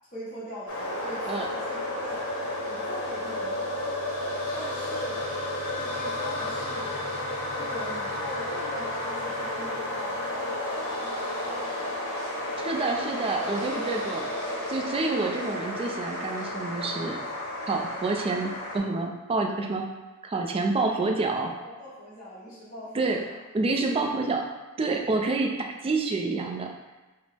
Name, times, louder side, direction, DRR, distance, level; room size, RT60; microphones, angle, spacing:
voice 1, 0.1-2.2 2.6-3.8 4.5-5.3 5.7-7.1 7.6-11.1 21.6-23.4 23.6-24.1, left 1 dB, 35° left, -11 dB, 0.9 m, -41 dB
sound 1, 0.7-18.8, left 1 dB, 65° left, 0.8 m, -32 dB
voice 2, 12.6-14.3 14.7-17.2 17.7-19.9 20.2-21.5 22.9-23.2 23.5-24.5 24.8-26.7, right 3 dB, 25° right, 2 dB, 0.3 m, -28 dB
5.1 x 2.0 x 3.3 m, 1.2 s
head